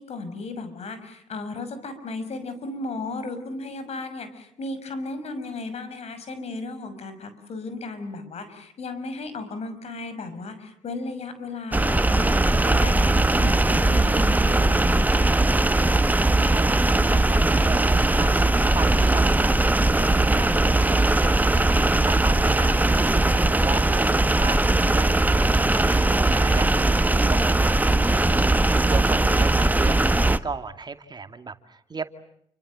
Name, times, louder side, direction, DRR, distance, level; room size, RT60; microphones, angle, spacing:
voice 1, 0.0-15.4, left 3 dB, 65° left, 11 dB, 6.2 m, -35 dB
sound 1, 11.7-30.4, right 2 dB, 15° right, 1.4 m, -20 dB
voice 2, 16.4-18.4 18.7-32.1, right 4 dB, 35° right, 8 dB, 2.5 m, -36 dB
29.5 x 25.5 x 7.7 m, 0.72 s
supercardioid pair, 65°, 12 cm